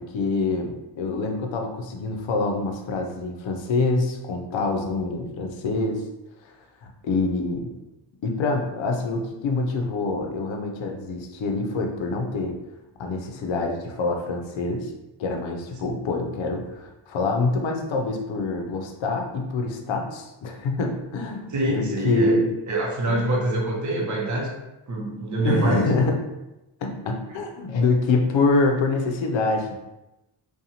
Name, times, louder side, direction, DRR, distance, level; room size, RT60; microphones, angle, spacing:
voice 1, 0.0-6.0 6.4-6.5 6.8-7.7 8.2-12.6 13.0-14.9 15.2-22.4 23.1-23.2 25.4-26.2 26.8-29.8, left 3 dB, 65° left, 3 dB, 0.6 m, -25 dB
voice 2, 21.5-22.4 22.7-24.5 24.9-25.8, right 2 dB, 35° right, -2 dB, 0.7 m, -25 dB
2.5 x 2.3 x 2.8 m, 0.95 s
cardioid pair, 85°, 49 cm